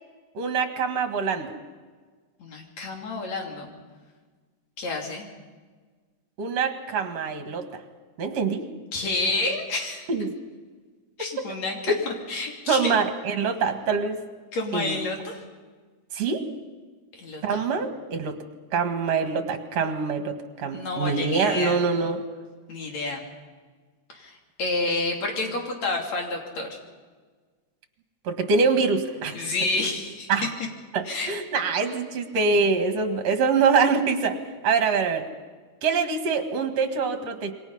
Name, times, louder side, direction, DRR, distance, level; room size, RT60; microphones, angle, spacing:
voice 1, 0.3-1.5 6.4-7.7 8.2-8.6 10.1-10.3 11.2-11.3 12.7-14.2 14.7-15.0 16.1-16.4 17.4-18.4 18.7-22.2 28.2-29.4 30.3-30.5 30.9-34.4 34.6-35.3 35.8-37.5, right 5 dB, 60° right, 7 dB, 2.9 m, -24 dB
voice 2, 2.4-3.7 4.8-5.3 8.9-10.1 11.2-11.9 12.3-12.9 14.5-15.4 17.2-17.6 20.7-21.8 22.7-23.2 24.1-26.7 29.3-30.3 31.1-31.3, left 2 dB, 65° left, 1 dB, 4.3 m, -29 dB
27.5 x 23.5 x 5.6 m, 1.5 s
omnidirectional pair, 3.4 m